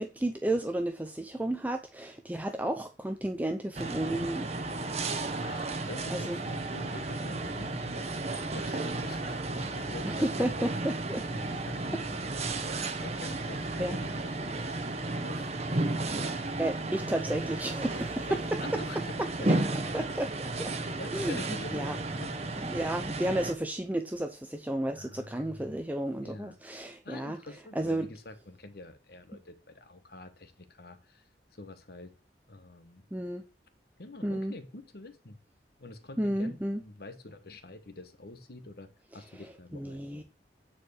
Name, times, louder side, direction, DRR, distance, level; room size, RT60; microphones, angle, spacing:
voice 1, 0.0-4.5 6.1-6.4 10.0-11.2 13.8-14.0 16.6-18.8 19.4-19.6 19.9-20.3 20.6-20.7 21.1-21.4 21.7-22.0 22.7-27.4 27.8-28.1 33.1-33.4 34.2-34.5 36.2-36.8 39.3-39.4 39.7-40.2, right 1 dB, 10° right, 0.6 m, -32 dB
sound 1, 3.7-23.5, right 2 dB, 40° right, 1.2 m, -33 dB
voice 2, 5.4-8.1 8.5-10.7 11.3-12.7 13.0-15.7 16.1-17.0 18.3-20.2 21.0-22.4 25.0-25.9 26.2-26.6 27.0-32.1 32.5-33.1 34.0-35.4 35.8-40.2, left 2 dB, 60° left, 1.2 m, -46 dB
9.4 x 4.8 x 6.4 m
head